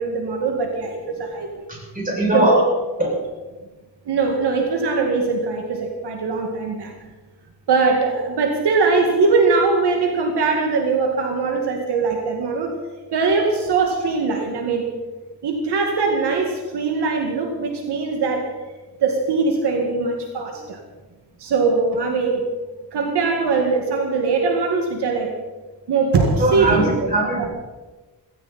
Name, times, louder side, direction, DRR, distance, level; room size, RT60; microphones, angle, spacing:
voice 1, 0.0-1.7 2.3-2.6 4.1-6.9 7.7-12.7 13.1-14.9 15.4-18.5 19.0-20.8 21.4-22.5 22.9-25.3 25.9-26.8 27.4-27.5, right 4 dB, 75° right, 2 dB, 2.3 m, -21 dB
voice 2, 1.7-2.6 3.0-3.2 26.4-27.5, right 1 dB, 20° right, -3 dB, 7.1 m, -20 dB
17.5 x 17.0 x 4.4 m, 1.2 s
cardioid pair, 120°, 40 cm